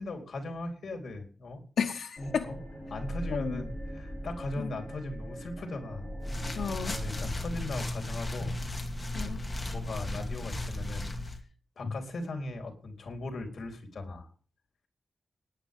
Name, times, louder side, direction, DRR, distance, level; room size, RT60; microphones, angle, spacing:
voice 1, 0.0-1.6 2.2-2.6 2.9-6.1 6.9-8.6 9.7-11.0 11.8-14.3, left 2 dB, 55° left, 4 dB, 4.1 m, -38 dB
voice 2, 1.8-2.4 3.3-3.6 4.6-4.7 6.5-7.0 9.1-9.4 11.8-11.9, left 6 dB, 85° left, 3 dB, 1.0 m, -32 dB
sound 1, 2.2-7.3, equal, 10° right, 5.3 m, -40 dB
sound 2, 6.2-11.4, left 1 dB, 15° left, 2.3 m, -35 dB
19.0 x 10.0 x 3.7 m, 0.39 s
wide cardioid pair, 165°, 0 cm